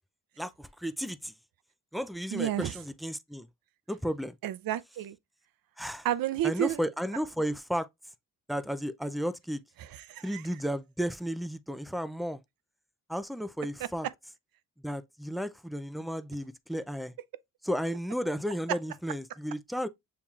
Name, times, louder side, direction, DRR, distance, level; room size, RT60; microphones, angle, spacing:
voice 1, 0.4-1.3 1.9-3.5 3.9-4.4 5.8-6.1 6.4-7.9 8.5-9.6 10.2-12.4 13.1-14.1 14.8-17.1 17.6-19.9, equal, ahead, 0.4 m, -33 dB
voice 2, 2.3-2.7 4.4-5.2 6.0-6.8 9.8-10.4, right 12 dB, 65° right, 0.6 m, -31 dB
7.0 x 2.9 x 2.4 m
cardioid pair, 80°, 37 cm